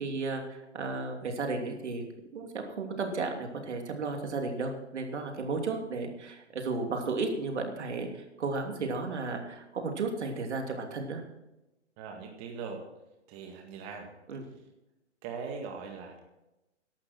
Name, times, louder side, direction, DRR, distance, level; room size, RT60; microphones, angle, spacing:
voice 1, 0.0-2.0 2.3-11.2 14.3-14.5, right 3 dB, 70° right, 3 dB, 3.0 m, -34 dB
voice 2, 12.0-12.8 13.3-14.1 15.2-16.2, right 5 dB, 30° right, 2 dB, 2.0 m, -40 dB
14.5 x 11.5 x 4.4 m, 0.95 s
hypercardioid pair, 130°, 36 cm